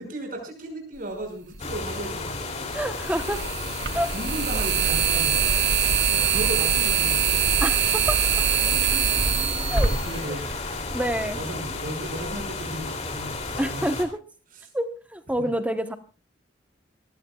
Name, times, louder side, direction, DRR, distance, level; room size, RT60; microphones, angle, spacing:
voice 1, 0.0-2.8 3.9-5.4 6.1-7.6 8.6-8.8 9.6-10.4 11.3-14.0 14.5-14.7 15.4-15.5, right 1 dB, 50° right, 3 dB, 5.8 m, -35 dB
sound 1, 1.5-1.6 3.0-10.9, right 7 dB, 70° right, 2.0 m, -23 dB
sound 2, 1.6-14.1, left 3 dB, 35° left, 3.0 m, -33 dB
voice 2, 2.7-3.4 3.9-4.1 7.6-8.2 9.7-9.9 10.9-11.4 13.6-14.2 14.7-16.0, right 1 dB, 10° right, 8 dB, 1.0 m, -27 dB
sound 3, 5.8-11.5, equal, 20° left, 7.6 m, -45 dB
27.5 x 15.5 x 2.4 m, 0.33 s
head